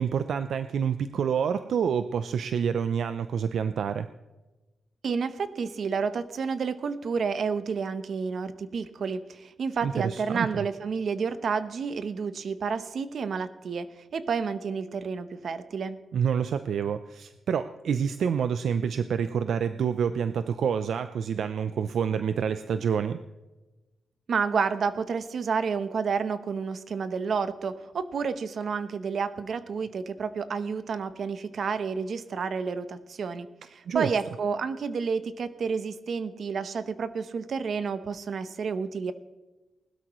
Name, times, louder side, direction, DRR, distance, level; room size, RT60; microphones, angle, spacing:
voice 1, 0.0-4.1 9.8-10.6 16.1-23.2 33.9-34.1, right 7 dB, 75° right, 11 dB, 0.5 m, -28 dB
voice 2, 5.0-16.0 24.3-39.1, right 5 dB, 55° right, 12 dB, 0.9 m, -30 dB
20.0 x 12.5 x 3.1 m, 1.1 s
wide cardioid pair, 135°, 0 cm